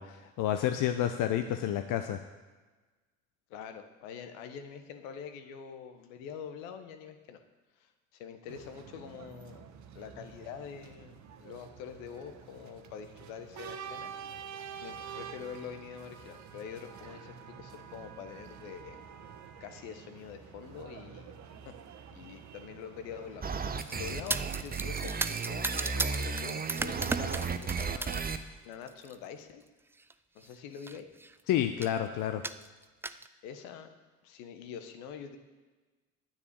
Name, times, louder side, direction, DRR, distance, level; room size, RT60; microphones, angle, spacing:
voice 1, 0.0-2.2 31.5-32.4, left 11 dB, 50° left, 7 dB, 0.8 m, -30 dB
voice 2, 3.5-7.4 7.8-9.7 9.9-14.1 14.8-19.0 19.6-21.3 21.6-21.7 22.1-28.2 28.6-29.6 30.3-31.1 33.4-33.9 34.2-35.4, left 7 dB, 70° left, 8 dB, 1.3 m, -45 dB
sound 1, 8.5-24.7, right 7 dB, 45° right, 1.2 m, -48 dB
sound 2, 23.4-28.4, right 5 dB, 20° right, 0.9 m, -34 dB
sound 3, 23.8-28.3 28.7-29.2 30.0-30.1 30.4-30.5 30.8-31.3 31.8-32.0 32.4-33.3, right 3 dB, 5° right, 0.3 m, -36 dB
9.7 x 7.3 x 8.4 m, 1.3 s
hypercardioid pair, 55°, 40 cm